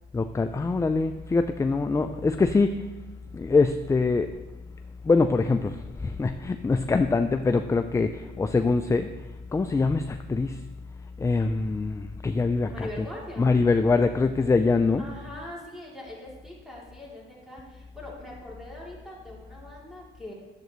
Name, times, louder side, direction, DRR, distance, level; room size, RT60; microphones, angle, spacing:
voice 1, 0.1-2.8 3.3-4.3 5.0-9.1 9.5-10.6 11.2-13.1 13.4-15.0, left 3 dB, 15° left, 8 dB, 0.3 m, -24 dB
voice 2, 12.7-13.5 15.0-20.3, left 1 dB, ahead, -5 dB, 3.1 m, -42 dB
10.5 x 7.6 x 3.1 m, 1.1 s
cardioid pair, 90°, 20 cm